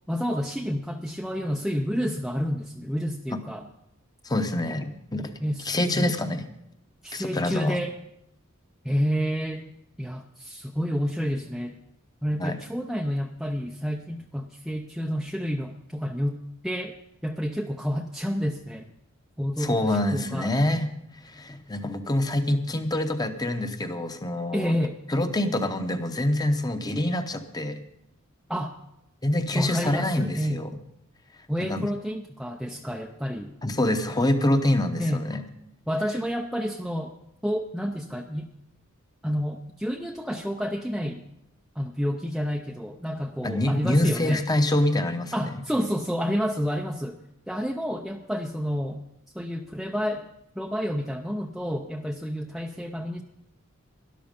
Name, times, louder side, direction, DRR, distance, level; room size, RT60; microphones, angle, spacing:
voice 1, 0.1-3.7 5.4-6.1 7.0-8.0 8.8-9.7 10.0-11.8 12.2-16.4 16.6-17.0 17.2-18.9 19.4-20.5 24.5-25.0 28.5-28.7 29.5-30.6 31.5-33.5 35.0-35.2 35.9-37.2 37.4-38.5 39.2-41.2 41.8-44.4 45.3-49.0 49.3-50.3 50.6-53.2, equal, ahead, 2 dB, 0.6 m, -29 dB
voice 2, 4.2-5.3 5.7-6.4 7.1-7.8 12.4-12.6 19.6-20.9 21.2-24.8 25.1-27.8 29.2-30.8 31.7-31.9 33.6-35.4 43.4-45.5, left 1 dB, 20° left, 8 dB, 0.9 m, -25 dB
12.5 x 11.5 x 5.2 m, 0.80 s
head